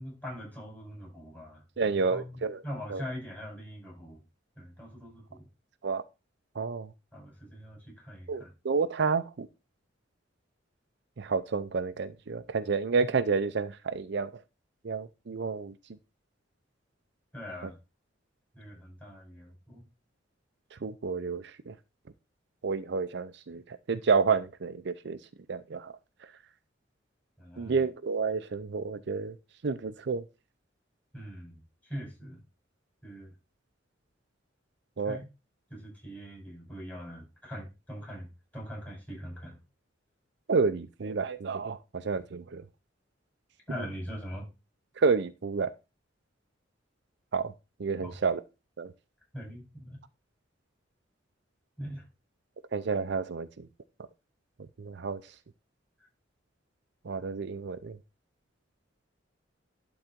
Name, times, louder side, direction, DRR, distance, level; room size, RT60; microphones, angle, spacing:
voice 1, 0.0-4.2 4.6-5.5 7.1-8.5 17.3-17.8 18.5-19.8 27.4-27.8 31.1-32.4 33.0-33.4 35.0-35.3 35.7-39.6 43.7-44.5 48.0-48.2 49.3-50.0 51.8-52.1, equal, 10° left, -3 dB, 5.6 m, -42 dB
voice 2, 1.8-2.6 2.9-3.0 5.8-6.0 6.6-6.9 8.3-9.5 11.2-14.3 14.8-15.7 20.8-21.7 22.6-25.2 25.5-25.9 27.6-29.3 29.6-30.2 35.0-35.2 40.5-42.6 45.0-45.7 47.3-47.5 47.8-48.4 48.8-48.9 52.7-53.7 54.8-55.2 57.1-58.0, right 5 dB, 65° right, 12 dB, 0.5 m, -30 dB
11.5 x 3.9 x 4.4 m, 0.27 s
head